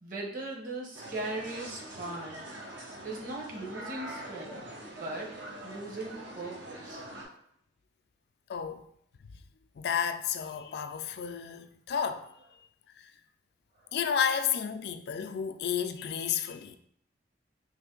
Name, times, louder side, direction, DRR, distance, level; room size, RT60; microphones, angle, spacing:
voice 1, 0.0-2.4 3.0-4.6 5.0-7.2 13.8-13.9, right 2 dB, 50° right, 0.9 m, -39 dB
sound 1, 0.9-7.2, right 1 dB, 85° right, 0.9 m, -44 dB
voice 2, 8.5-8.9 9.2-9.4 9.8-12.3 13.0-13.1 13.9-16.8, left 7 dB, 60° left, 0.3 m, -32 dB
3.3 x 2.6 x 3.7 m
head